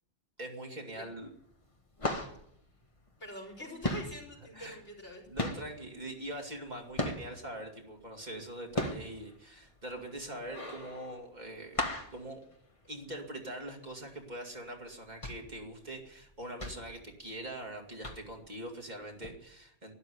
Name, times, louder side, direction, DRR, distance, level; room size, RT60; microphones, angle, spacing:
voice 1, 0.4-1.3 4.5-4.8 5.3-11.8 12.1-12.4 12.9-19.9, right 1 dB, 40° right, 1 dB, 2.5 m, -43 dB
sound 1, 0.9-1.3 1.6-3.5 3.8-7.5 8.0-13.3 13.6-13.7 14.1-14.3 14.9-17.7 18.0-18.5 19.2-19.3, left 1 dB, 30° left, 1.6 m, -37 dB
voice 2, 3.2-5.2, equal, 75° left, -1 dB, 4.9 m, -45 dB
12.5 x 11.5 x 9.7 m, 0.75 s
omnidirectional pair, 1.2 m